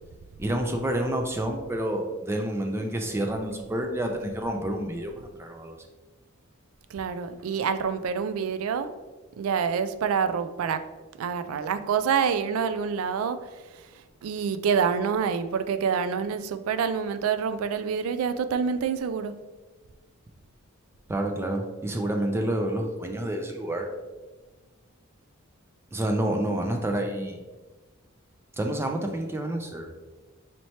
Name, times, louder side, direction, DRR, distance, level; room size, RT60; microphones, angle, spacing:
voice 1, 0.4-5.8 21.1-23.9 25.9-27.4 28.6-29.9, right 1 dB, 10° right, 3 dB, 0.3 m, -29 dB
voice 2, 6.9-8.9 9.4-10.8 11.2-13.4 14.2-19.3, right 6 dB, 90° right, 11 dB, 0.3 m, -27 dB
4.3 x 3.1 x 2.8 m, 1.2 s
head